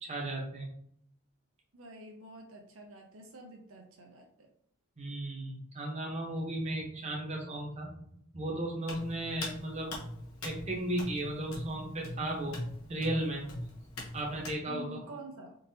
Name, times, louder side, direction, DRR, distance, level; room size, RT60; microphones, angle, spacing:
voice 1, 0.0-0.7 5.0-8.0 8.3-9.9 10.4-12.6 12.9-13.4 14.1-15.0, right 1 dB, 30° right, -2 dB, 0.9 m, -35 dB
voice 2, 1.7-4.5 14.7-15.6, right 1 dB, 70° right, 2 dB, 0.6 m, -48 dB
Hands, 8.8-14.6, left 1 dB, 85° left, 1.0 m, -42 dB
3.7 x 2.7 x 2.7 m, 0.69 s
head